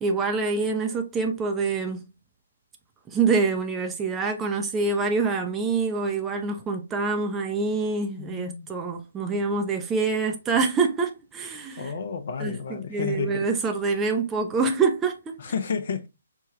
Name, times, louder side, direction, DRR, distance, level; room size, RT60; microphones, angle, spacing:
voice 1, 0.0-2.1 3.1-11.9 12.4-15.3, right 4 dB, 15° right, 0.5 m, -26 dB
voice 2, 8.2-8.7 11.8-13.5 15.4-16.1, left 5 dB, 50° left, 0.6 m, -31 dB
4.5 x 2.2 x 3.1 m
figure-of-eight pair, 135°, 0 cm